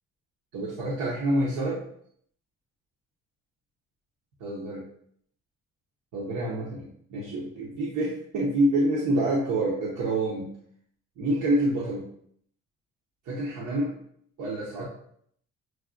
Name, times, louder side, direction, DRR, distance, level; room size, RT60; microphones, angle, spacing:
voice 1, 0.5-1.8 4.4-4.8 6.1-10.5 11.2-12.0 13.3-13.9 14.4-14.9, right 1 dB, 85° right, -5 dB, 1.0 m, -27 dB
6.2 x 2.4 x 2.5 m, 0.65 s
cardioid pair, 90°, 30 cm